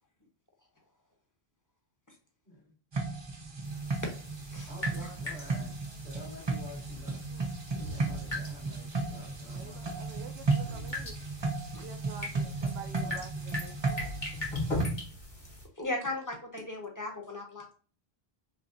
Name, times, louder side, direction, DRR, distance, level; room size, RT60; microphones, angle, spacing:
sound 1, 2.9-14.9, right 3 dB, 35° right, 0.5 m, -35 dB
sound 2, 3.6-15.6, left 1 dB, 50° left, 1.5 m, -40 dB
voice 1, 4.7-7.2 7.9-10.0 13.0-13.2, left 1 dB, 70° left, -9 dB, 2.2 m, -49 dB
voice 2, 9.5-11.2 11.8-14.1, right 6 dB, 75° right, 8 dB, 0.8 m, -48 dB
voice 3, 15.8-17.7, left 2 dB, 20° left, 1 dB, 0.9 m, -36 dB
5.3 x 2.2 x 2.6 m, 0.40 s
omnidirectional pair, 1.1 m